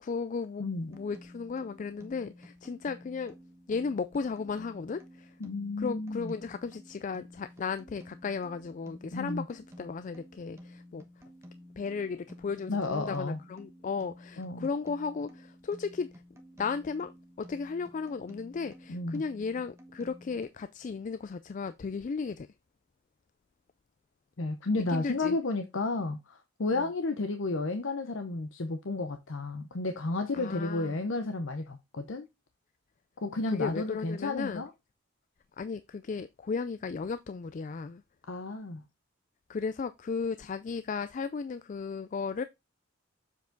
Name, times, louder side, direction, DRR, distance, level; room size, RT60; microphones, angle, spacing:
voice 1, 0.0-0.6 0.9-3.3 3.7-5.3 5.8-11.0 11.8-16.1 16.6-17.1 17.4-22.5 24.7-25.4 26.7-26.9 30.3-31.0 33.5-34.6 35.6-38.0 39.5-42.4, left 5 dB, 40° left, 0.3 m, -35 dB
voice 2, 0.6-0.9 5.4-6.3 9.1-9.5 12.7-13.4 14.4-14.7 18.9-19.2 24.4-32.3 33.2-34.7 38.3-38.8, left 3 dB, 70° left, 0.7 m, -32 dB
sound 1, 0.9-20.5, left 1 dB, 15° right, 1.1 m, -52 dB
7.3 x 4.7 x 3.8 m
head